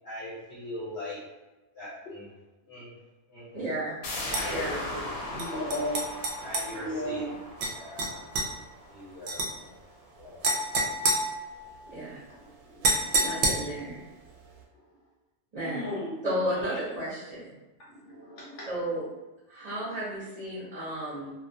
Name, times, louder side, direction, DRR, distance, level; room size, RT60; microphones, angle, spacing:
voice 1, 0.0-1.2 1.7-2.3 2.7-2.9 3.3-3.7 4.1-5.2 6.4-8.3 8.9-9.7 10.1-10.4, left 1 dB, 65° left, -8 dB, 1.1 m, -41 dB
voice 2, 3.5-4.0 4.5-4.8 11.9-12.2 13.1-14.0 15.5-15.9 16.2-17.5 18.7-19.0 19.5-21.3, right 1 dB, 40° right, -10 dB, 0.7 m, -33 dB
sound 1, 4.0-9.5 9.9-10.0, left 2 dB, 90° left, 1.0 m, -39 dB
sound 2, 4.3-4.5 5.4-6.7 7.6-7.7 8.0-8.5 9.3-9.5 10.4-11.9 12.8-13.9, right 2 dB, 70° right, 0.8 m, -28 dB
voice 3, 5.3-6.0 6.7-7.3 13.2-13.8 15.6-16.2 18.0-18.6 19.8-20.0 21.2-21.3, left 1 dB, 45° left, -6 dB, 0.9 m, -35 dB
2.4 x 2.2 x 2.6 m, 1.0 s
omnidirectional pair, 1.2 m